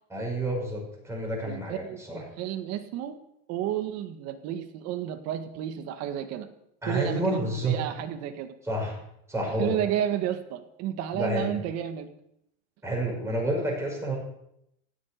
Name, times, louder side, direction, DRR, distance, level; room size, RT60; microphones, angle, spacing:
voice 1, 0.1-2.2 6.8-7.8 8.6-9.0 9.3-9.8 11.1-11.5 12.8-14.2, right 1 dB, 5° right, -1 dB, 5.9 m, -29 dB
voice 2, 1.4-3.2 3.5-6.5 6.8-8.5 9.6-12.1, right 11 dB, 45° right, 7 dB, 1.9 m, -32 dB
16.5 x 8.5 x 9.7 m, 0.78 s
supercardioid pair, 160°, 37 cm